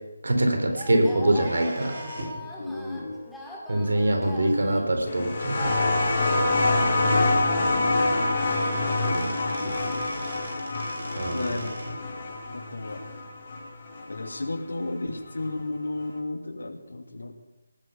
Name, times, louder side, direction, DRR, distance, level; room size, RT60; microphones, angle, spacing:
voice 1, 0.2-2.0 3.7-5.8 11.2-11.6, right 1 dB, 70° right, 4 dB, 3.8 m, -24 dB
sound 1, 0.7-7.6, left 1 dB, ahead, 2.5 m, -41 dB
sound 2, 1.3-2.5 4.2-4.3 5.3-5.4 5.8-5.9 6.2-6.3 7.6-7.7 8.0-12.0, right 1 dB, 50° right, 6.0 m, -40 dB
voice 2, 2.6-3.2 7.0-10.3 11.3-11.8 12.5-13.0 14.1-17.3, left 2 dB, 70° left, 6 dB, 2.3 m, -34 dB
sound 3, 5.1-14.3 15.5-15.6, left 2 dB, 45° left, 4.6 m, -26 dB
18.5 x 10.0 x 6.9 m, 0.99 s
figure-of-eight pair, 155°, 0 cm